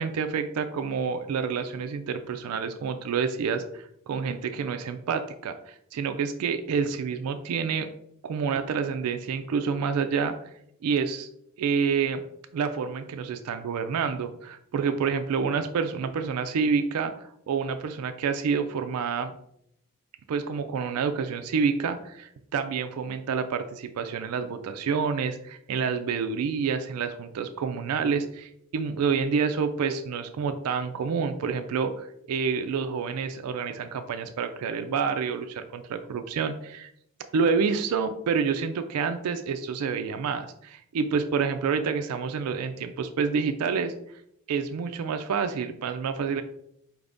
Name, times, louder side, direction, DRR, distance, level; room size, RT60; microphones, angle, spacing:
voice 1, 0.0-7.9 8.2-10.3 10.8-11.3 11.6-12.2 12.5-19.3 20.3-36.9 37.3-43.9 44.5-46.4, right 5 dB, 90° right, 8 dB, 0.3 m, -28 dB
4.6 x 2.5 x 3.4 m, 0.73 s
head